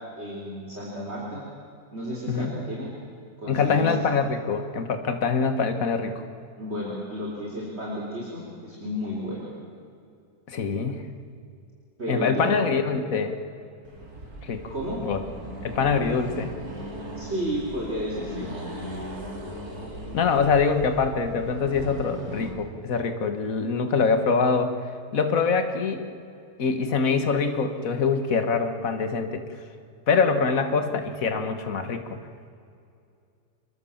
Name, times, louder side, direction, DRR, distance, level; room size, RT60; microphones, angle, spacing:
voice 1, 0.2-1.4 1.9-2.9 3.4-3.9 6.6-9.5 12.0-12.6 14.7-15.0 17.2-18.5, equal, 45° right, -5 dB, 4.1 m, -32 dB
voice 2, 2.3-2.6 3.5-6.1 10.5-11.0 12.1-13.4 14.4-14.6 15.0-15.2 15.6-16.5 20.1-24.7 25.1-26.0 26.6-29.4 30.1-32.0, left 5 dB, 65° left, 7 dB, 1.9 m, -24 dB
Accelerating revving vroom, 13.8-22.6, equal, 85° right, 4.4 m, -38 dB
25.5 x 22.5 x 7.3 m, 2.4 s
omnidirectional pair, 1.6 m